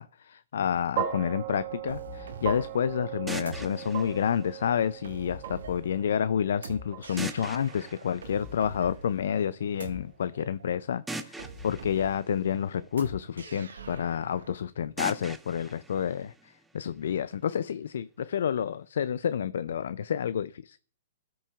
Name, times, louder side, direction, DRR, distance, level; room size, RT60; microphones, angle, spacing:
voice 1, 0.0-20.8, left 8 dB, 70° left, 0.3 m, -29 dB
sound 1, 1.0-9.3, right 10 dB, 50° right, 1.5 m, -39 dB
sound 2, 1.9-14.6, right 2 dB, 85° right, 1.4 m, -45 dB
sound 3, 3.3-5.3 7.2-9.1 11.1-13.3 15.0-17.0, right 2 dB, 5° right, 0.6 m, -42 dB
13.5 x 6.1 x 2.4 m
hypercardioid pair, 130°, 0 cm